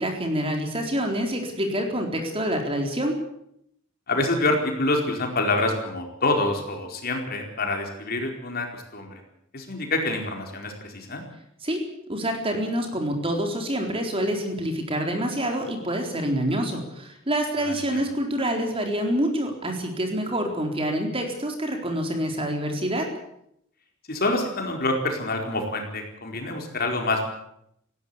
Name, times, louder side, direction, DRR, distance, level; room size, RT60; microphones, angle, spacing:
voice 1, 0.0-3.2 11.6-11.8 12.1-23.1, equal, 25° right, 3 dB, 4.0 m, -27 dB
voice 2, 4.1-9.2 9.5-11.2 17.6-18.0 24.1-27.2, left 2 dB, 50° left, 3 dB, 4.5 m, -26 dB
19.5 x 16.5 x 8.6 m, 0.75 s
head